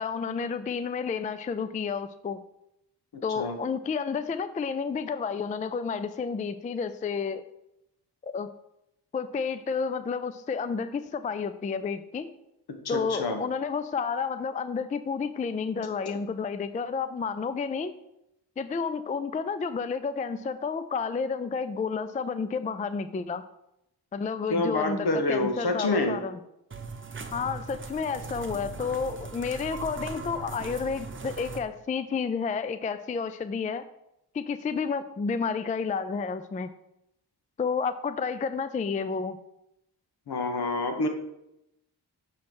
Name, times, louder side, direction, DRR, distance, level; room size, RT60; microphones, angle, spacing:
voice 1, 0.0-2.4 3.2-7.4 8.2-8.5 9.1-12.3 12.9-17.9 18.6-23.4 24.1-26.4 27.3-33.8 34.3-36.7 37.6-39.4, left 5 dB, 20° left, 11 dB, 0.3 m, -31 dB
voice 2, 12.7-13.4 24.5-26.2 40.3-41.1, left 2 dB, 65° left, 6 dB, 1.2 m, -27 dB
sound 1, 26.7-31.6, right 4 dB, 30° right, 0.8 m, -39 dB
7.0 x 3.2 x 6.0 m, 0.83 s
cardioid pair, 65°, 42 cm